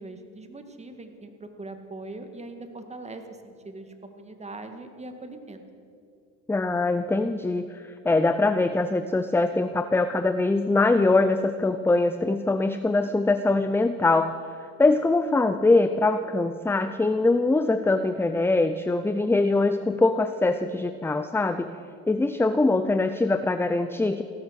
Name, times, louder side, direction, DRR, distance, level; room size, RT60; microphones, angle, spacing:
voice 1, 0.0-5.6, right 2 dB, 20° right, 6 dB, 2.0 m, -41 dB
voice 2, 6.5-14.4 14.8-21.7 22.1-24.2, left 2 dB, 5° left, 10 dB, 0.6 m, -23 dB
16.0 x 13.0 x 6.6 m, 2.4 s
supercardioid pair, 85°, 37 cm